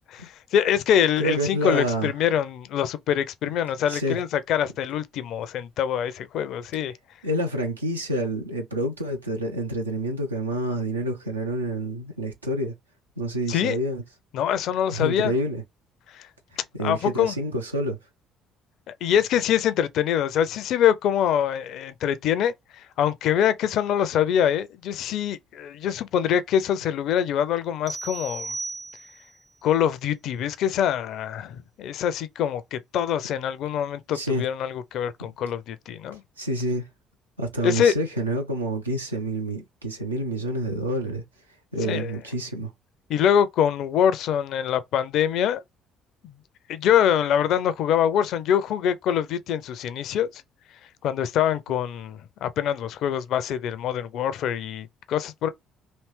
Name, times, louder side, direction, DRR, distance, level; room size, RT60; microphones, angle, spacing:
voice 1, 0.1-6.9 13.5-13.8 14.3-15.3 16.2-16.3 16.8-17.4 18.9-28.6 29.6-36.2 37.6-37.9 41.8-42.1 43.1-45.6 46.2-46.3 46.7-50.4 51.0-55.5, left 9 dB, 60° left, 0.4 m, -24 dB
voice 2, 1.2-2.1 3.9-4.2 7.2-12.7 13.2-14.0 14.9-15.6 16.7-18.0 34.1-34.4 35.2-35.3 36.4-36.9 37.4-41.2 41.7-42.7, right 1 dB, 90° right, 0.6 m, -28 dB
sound 1, 27.9-29.4, right 3 dB, 30° right, 0.6 m, -35 dB
3.2 x 2.8 x 3.2 m
figure-of-eight pair, 50°, 0 cm